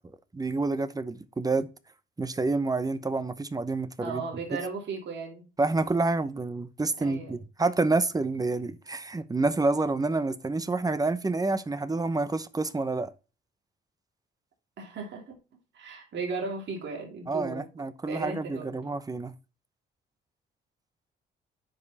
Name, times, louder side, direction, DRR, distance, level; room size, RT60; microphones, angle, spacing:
voice 1, 0.3-1.7 2.2-4.2 5.6-13.1 17.3-19.3, right 3 dB, 20° right, 0.9 m, -28 dB
voice 2, 4.0-5.4 7.0-7.4 14.8-15.4 15.7-17.6 18.1-18.7, right 4 dB, 65° right, 2.7 m, -36 dB
9.4 x 5.4 x 4.2 m
cardioid pair, 90°, 20 cm